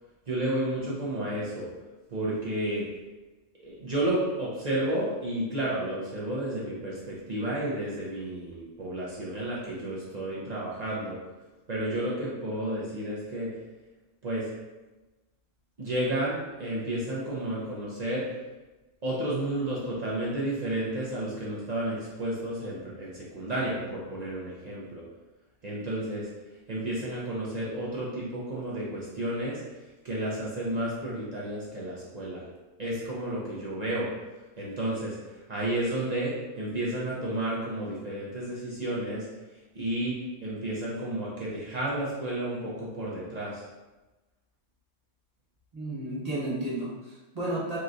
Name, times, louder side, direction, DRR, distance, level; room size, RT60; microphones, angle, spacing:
voice 1, 0.3-1.7 2.1-2.8 3.6-11.2 11.7-13.5 14.2-14.5 15.8-18.3 19.0-25.0 25.6-26.3 26.7-29.6 30.0-32.4 32.8-34.1 34.6-35.2 35.5-39.3 39.7-40.2 40.4-43.6, right 1 dB, 55° right, -6 dB, 0.4 m, -31 dB
voice 2, 45.7-47.8, right 1 dB, 30° right, -8 dB, 1.1 m, -32 dB
3.8 x 3.0 x 2.5 m, 1.1 s
omnidirectional pair, 1.6 m